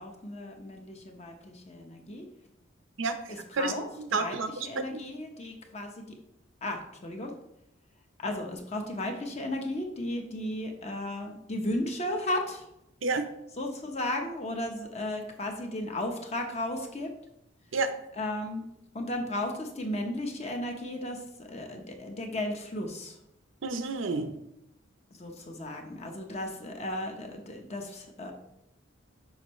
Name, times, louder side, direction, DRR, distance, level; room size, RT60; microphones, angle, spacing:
voice 1, 0.0-2.3 3.6-3.9 4.2-4.4 4.6-6.0 6.6-7.3 8.2-12.6 13.6-17.1 18.2-18.6 18.9-23.2 25.2-28.3, left 1 dB, 35° left, 3 dB, 0.9 m, -35 dB
voice 2, 3.0-3.7 4.0-5.0 13.0-13.3 17.7-17.9 23.6-24.3, right 3 dB, 75° right, 8 dB, 0.6 m, -30 dB
6.5 x 5.3 x 3.1 m, 0.81 s
head